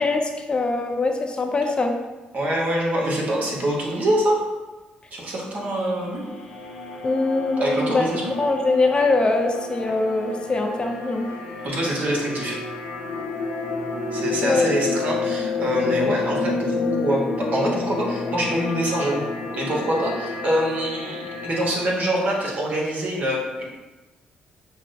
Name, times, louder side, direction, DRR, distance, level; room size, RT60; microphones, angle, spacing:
voice 1, 0.0-2.0 7.0-8.1 8.4-11.3 14.4-14.7, left 3 dB, 30° left, 3 dB, 0.4 m, -22 dB
voice 2, 2.3-4.4 5.1-6.2 7.6-8.3 11.6-12.6 14.1-16.7 17.0-19.3 19.5-23.6, right 1 dB, 55° right, -3 dB, 1.1 m, -25 dB
sound 1, 5.6-22.5, left 4 dB, 80° left, 0.7 m, -30 dB
5.5 x 2.1 x 2.6 m, 1.2 s
cardioid pair, 75°, 3 cm